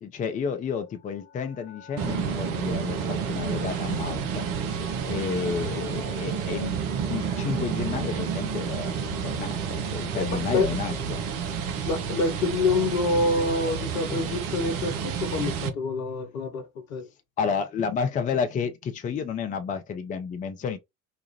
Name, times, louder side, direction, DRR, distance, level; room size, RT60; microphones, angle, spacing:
voice 1, 0.0-4.5 5.0-6.8 7.0-11.2 17.4-20.8, left 6 dB, 20° left, 0.5 m, -31 dB
sound 1, 0.8-8.2, left 3 dB, 50° left, 1.1 m, -45 dB
sound 2, 2.0-15.7, right 7 dB, 50° right, 0.7 m, -30 dB
voice 2, 10.2-10.7 11.8-17.1, left 3 dB, 70° left, 0.8 m, -27 dB
2.9 x 2.4 x 2.8 m
figure-of-eight pair, 65°, 43 cm